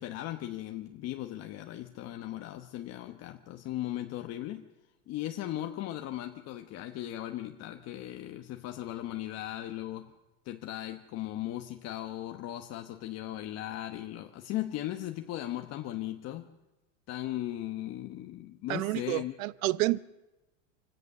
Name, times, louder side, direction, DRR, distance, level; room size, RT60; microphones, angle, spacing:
voice 1, 0.0-4.7 5.1-10.1 10.4-16.5 17.1-19.3, left 13 dB, 40° left, 1.2 m, -37 dB
voice 2, 18.7-20.0, right 19 dB, 80° right, 0.8 m, -29 dB
26.0 x 17.0 x 6.7 m
supercardioid pair, 145°, 40 cm